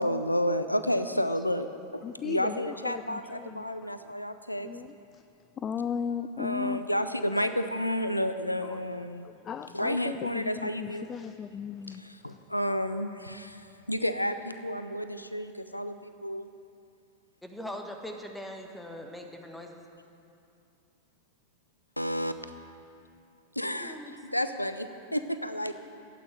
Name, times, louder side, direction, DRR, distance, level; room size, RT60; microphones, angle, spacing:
voice 1, 0.0-1.7 1.9-4.7 6.4-9.3 9.7-11.1 11.9-16.5 22.0-22.3 23.6-24.0 24.3-25.7, equal, 85° left, 10 dB, 0.6 m, -31 dB
voice 2, 2.0-3.7 4.6-4.9 5.6-6.8 9.4-12.0, left 7 dB, 25° left, 12 dB, 0.4 m, -36 dB
voice 3, 17.4-19.8 23.7-24.1, left 1 dB, 5° left, 3 dB, 1.5 m, -41 dB
12.5 x 8.6 x 9.4 m, 2.6 s
figure-of-eight pair, 90°, 0 cm